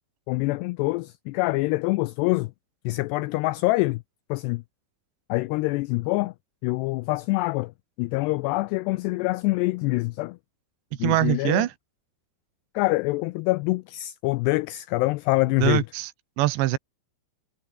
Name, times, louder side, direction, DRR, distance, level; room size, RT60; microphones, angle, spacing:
voice 1, 0.3-2.5 2.9-4.0 4.3-4.6 5.3-6.3 6.6-7.7 8.0-10.4 11.0-11.7 12.8-15.9, left 22 dB, 90° left, 2.4 m, -25 dB
voice 2, 11.0-11.7 15.6-16.1 16.4-16.8, right 16 dB, 75° right, 3.1 m, -23 dB
omnidirectional pair, 5.4 m